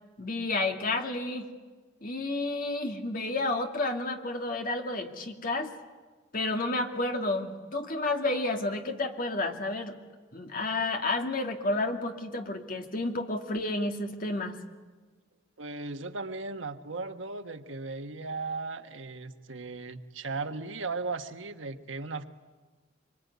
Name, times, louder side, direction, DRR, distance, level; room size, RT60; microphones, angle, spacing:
voice 1, 0.2-1.5 2.0-5.7 6.3-9.9 10.3-14.6, left 2 dB, 45° left, 4 dB, 2.3 m, -31 dB
voice 2, 15.6-22.3, right 3 dB, 85° right, 7 dB, 1.4 m, -37 dB
24.5 x 23.5 x 9.5 m, 1.4 s
head